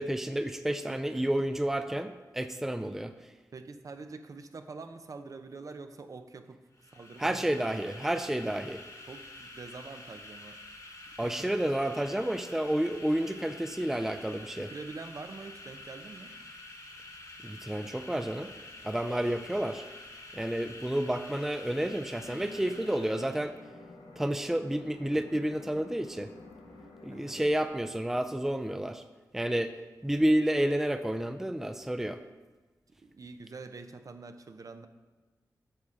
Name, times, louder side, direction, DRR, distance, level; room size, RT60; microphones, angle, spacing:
voice 1, 0.0-3.1 7.2-8.8 11.2-14.7 17.4-18.5 18.8-19.8 20.3-23.5 24.2-26.3 27.0-29.0 29.3-29.7 30.0-32.2, right 1 dB, 5° right, 9 dB, 0.4 m, -30 dB
voice 2, 0.9-1.3 3.5-7.9 9.1-10.6 11.2-11.5 14.6-16.3 19.1-19.3 27.1-27.4 33.0-34.9, right 4 dB, 55° right, 8 dB, 0.6 m, -45 dB
sound 1, 6.7-23.6, left 2 dB, 55° left, 1.4 m, -48 dB
sound 2, 22.2-27.7, left 3 dB, 90° left, 1.1 m, -50 dB
8.8 x 3.6 x 6.3 m, 1.2 s
cardioid pair, 70°, 7 cm